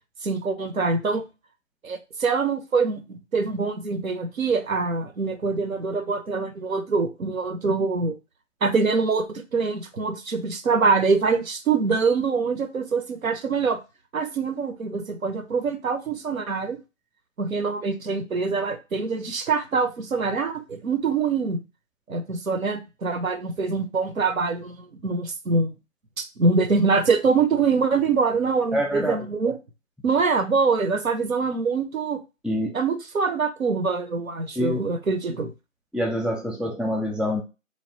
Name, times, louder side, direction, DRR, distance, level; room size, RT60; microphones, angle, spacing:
voice 1, 0.2-1.2 1.8-8.1 8.6-13.8 14.1-16.8 17.4-21.6 22.1-25.7 26.2-29.6 30.0-32.2 32.7-35.5, right 4 dB, 80° right, 7 dB, 0.7 m, -24 dB
voice 2, 28.7-29.3 32.4-32.8 34.6-34.8 35.9-37.4, equal, ahead, 0 dB, 0.3 m, -26 dB
3.2 x 2.1 x 2.7 m, 0.28 s
figure-of-eight pair, 165°, 40 cm